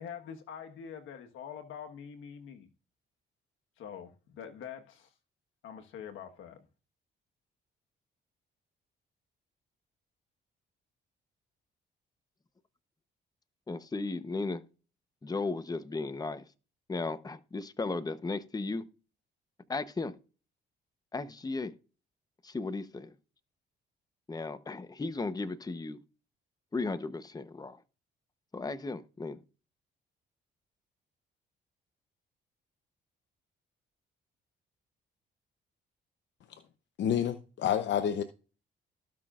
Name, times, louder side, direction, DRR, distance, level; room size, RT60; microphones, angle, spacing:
voice 1, 0.0-2.7 3.8-5.1 5.6-6.6, left 8 dB, 85° left, 1.4 m, -45 dB
voice 2, 13.7-14.6 15.2-16.4 16.9-18.8 19.7-20.1 21.1-21.7 22.4-23.1 24.3-26.0 26.7-27.8 28.5-29.4, left 3 dB, 20° left, 0.9 m, -35 dB
voice 3, 37.0-38.2, left 9 dB, 65° left, 0.8 m, -29 dB
17.5 x 6.0 x 2.5 m
cardioid pair, 90°, 20 cm